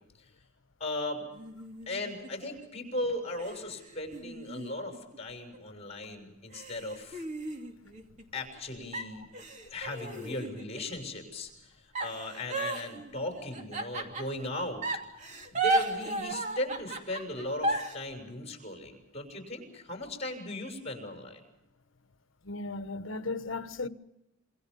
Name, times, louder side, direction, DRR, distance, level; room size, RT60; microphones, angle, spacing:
voice 1, 0.8-1.3 1.9-7.3 8.3-9.3 9.7-14.8 15.5-21.4, left 1 dB, 35° left, 7.0 m, -37 dB
sound 1, 1.3-2.7 3.4-5.6 6.0-6.1 6.5-8.6 8.9-10.9 12.0-14.5 14.8-18.0, right 2 dB, 40° right, 2.8 m, -34 dB
voice 2, 22.4-23.9, left 3 dB, 70° left, 1.2 m, -35 dB
27.0 x 25.5 x 5.5 m
head